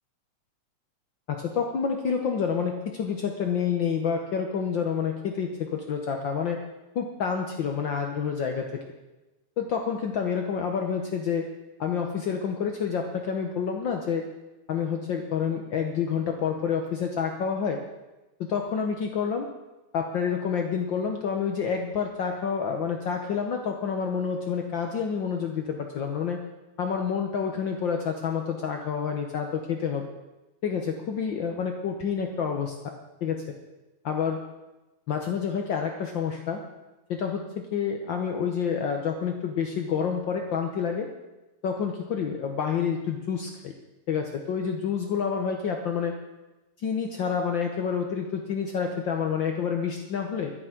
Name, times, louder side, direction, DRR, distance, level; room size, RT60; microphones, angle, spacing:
voice 1, 1.3-6.6 6.9-8.8 9.6-11.5 11.8-14.3 14.7-17.8 18.4-19.5 19.9-26.4 26.8-30.1 30.6-32.7 33.2-33.4 34.0-34.4 35.1-36.6 37.1-41.1 41.6-43.7 44.1-46.2 46.8-50.5, left 6 dB, 70° left, 3 dB, 1.1 m, -28 dB
11.5 x 10.5 x 9.2 m, 1.1 s
omnidirectional pair, 3.7 m